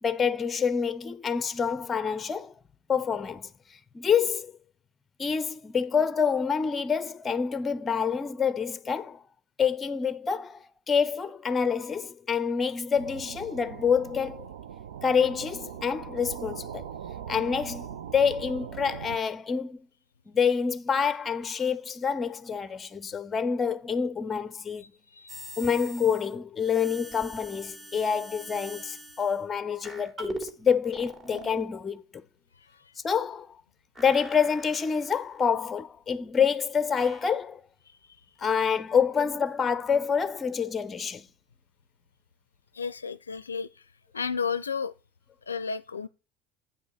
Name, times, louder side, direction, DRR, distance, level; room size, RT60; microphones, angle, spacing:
voice 1, 0.0-2.5 2.9-3.5 3.9-4.5 5.2-9.2 9.6-14.5 15.0-16.9 17.3-17.9 18.1-19.9 20.3-24.8 25.6-32.0 33.0-33.5 34.0-37.6 38.4-41.3, left 6 dB, 25° left, 0.7 m, -27 dB
sound 1, 12.9-19.2, right 9 dB, 70° right, 0.7 m, -40 dB
sound 2, 25.3-26.3 26.6-29.4 29.8-30.5 30.9-31.7 33.9-35.5 37.0-37.3, right 1 dB, 25° right, 2.5 m, -42 dB
voice 2, 42.7-43.7 44.1-44.9 45.5-46.1, left 6 dB, 80° left, 0.5 m, -32 dB
8.8 x 5.2 x 4.9 m
figure-of-eight pair, 70°, 0 cm